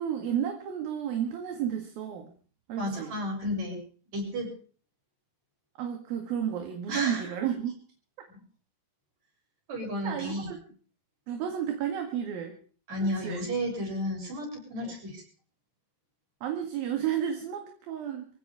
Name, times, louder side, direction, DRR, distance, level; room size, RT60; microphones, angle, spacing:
voice 1, 0.0-2.3 2.7-3.1 5.8-7.7 10.0-10.6 11.3-12.6 13.0-13.5 14.7-14.9 16.4-18.3, right 9 dB, 65° right, 4 dB, 3.4 m, -32 dB
voice 2, 2.8-3.8 4.1-4.5 6.9-7.3 8.3-8.4 9.7-10.5 12.9-15.2, equal, 40° right, 0 dB, 8.1 m, -32 dB
24.0 x 16.5 x 3.6 m, 0.42 s
omnidirectional pair, 4.9 m